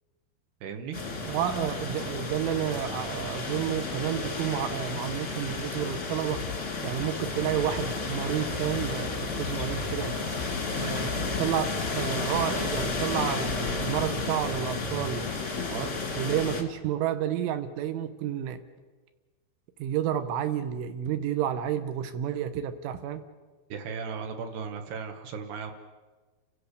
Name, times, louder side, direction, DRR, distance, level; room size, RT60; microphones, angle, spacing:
voice 1, 0.6-1.0 15.7-15.9 23.7-25.7, right 6 dB, 70° right, 5 dB, 2.9 m, -36 dB
sound 1, 0.9-16.6, left 3 dB, 40° left, 1.0 m, -32 dB
voice 2, 1.2-6.5 6.8-10.2 10.8-15.3 16.2-18.6 19.8-23.2, right 10 dB, 85° right, 9 dB, 3.4 m, -30 dB
sound 2, 6.3-11.4, left 8 dB, 90° left, 2.0 m, -39 dB
29.5 x 16.5 x 6.7 m, 1.3 s
omnidirectional pair, 5.6 m